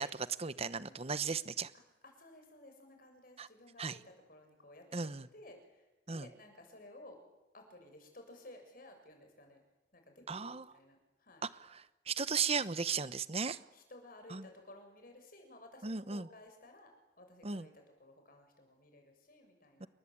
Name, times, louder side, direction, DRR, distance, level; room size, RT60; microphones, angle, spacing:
voice 1, 0.0-1.7 3.4-3.5 3.8-4.0 4.9-5.3 6.1-6.3 10.3-10.7 11.4-13.6 14.3-14.5 15.8-16.3 17.4-17.7 19.8-19.9, right 5 dB, 35° right, 15 dB, 1.0 m, -36 dB
voice 2, 2.0-4.8 5.3-7.2 7.5-9.6 9.9-11.5 13.4-16.9 17.2-19.9, left 1 dB, 50° left, 5 dB, 7.0 m, -56 dB
29.0 x 22.5 x 8.6 m, 1.0 s
head